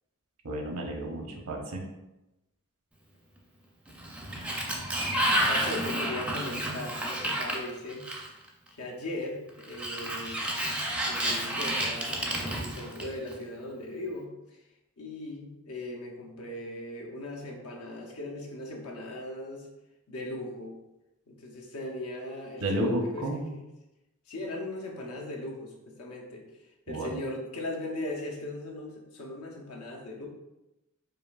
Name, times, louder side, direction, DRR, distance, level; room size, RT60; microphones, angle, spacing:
voice 1, 0.4-1.9 22.6-23.5 26.9-27.1, right 1 dB, 85° right, 2 dB, 0.8 m, -31 dB
Sliding door, 3.9-8.5 9.6-13.3, right 1 dB, 5° right, 0.4 m, -30 dB
voice 2, 5.5-8.0 8.7-10.4 11.1-14.6 15.0-19.7 20.1-20.7 21.3-23.3 24.3-26.6 26.9-30.3, left 1 dB, 80° left, 0 dB, 0.8 m, -38 dB
5.0 x 2.5 x 2.3 m, 0.96 s
head